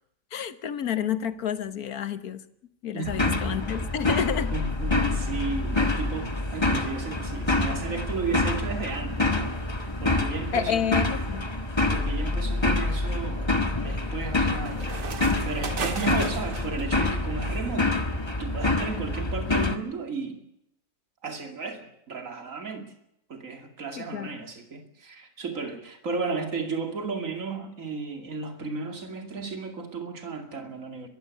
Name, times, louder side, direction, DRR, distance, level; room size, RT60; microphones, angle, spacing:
voice 1, 0.3-2.4 2.8-4.5 10.5-11.5 24.0-24.4, left 8 dB, 65° left, 1.5 m, -29 dB
voice 2, 2.9-3.4 4.5-10.9 11.9-13.5 13.8-15.2 15.4-18.0 18.4-20.4 21.2-22.9 23.3-31.1, right 4 dB, 50° right, 2.9 m, -34 dB
sound 1, 3.0-19.8, left 2 dB, 15° left, 1.4 m, -27 dB
sound 2, 11.5-11.6 12.2-16.8, right 5 dB, 80° right, 2.5 m, -37 dB
22.5 x 15.0 x 9.7 m
omnidirectional pair, 1.8 m